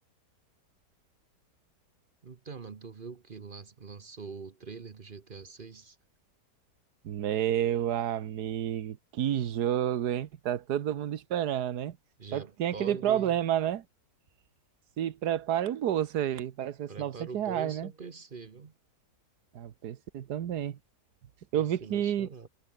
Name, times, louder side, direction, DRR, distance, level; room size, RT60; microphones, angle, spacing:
voice 1, 2.2-6.0 12.2-13.4 16.9-18.7 21.6-22.5, right 5 dB, 35° right, 1.0 m, -43 dB
voice 2, 7.0-12.0 12.3-13.8 15.0-17.9 19.5-20.8 21.5-22.3, right 10 dB, 70° right, 1.6 m, -30 dB
omnidirectional pair, 1.8 m